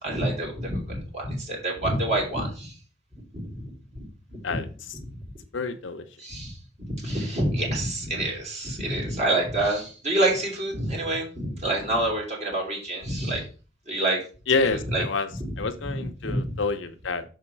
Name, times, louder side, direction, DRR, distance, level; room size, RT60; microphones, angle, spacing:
voice 1, 0.0-2.7 3.3-3.6 3.9-4.0 4.3-4.6 6.2-13.4 13.9-14.2 14.7-15.0 15.4-15.5 16.0-16.6, right 1 dB, 40° right, -1 dB, 3.0 m, -27 dB
voice 2, 5.5-6.0 14.5-15.3 15.6-17.2, left 4 dB, 85° left, 8 dB, 0.8 m, -27 dB
6.5 x 4.7 x 4.6 m, 0.36 s
head